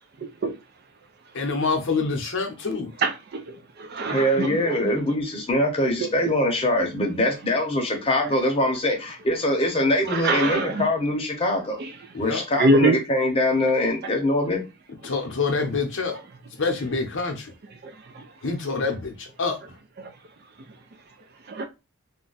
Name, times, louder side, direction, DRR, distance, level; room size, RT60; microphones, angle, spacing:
voice 1, 1.3-2.9 12.1-12.4 15.0-16.2 16.6-17.5 18.4-19.6, left 4 dB, 60° left, 0.7 m, -26 dB
voice 2, 3.0-4.9 6.0-6.3 10.1-10.9 11.8-11.9 12.5-13.0 14.0-14.1 17.8-18.3 20.0-20.1 21.5-21.7, right 2 dB, 50° right, 0.4 m, -25 dB
voice 3, 4.1-11.8 12.2-14.6, left 1 dB, 25° left, 0.8 m, -23 dB
2.5 x 2.2 x 3.9 m
head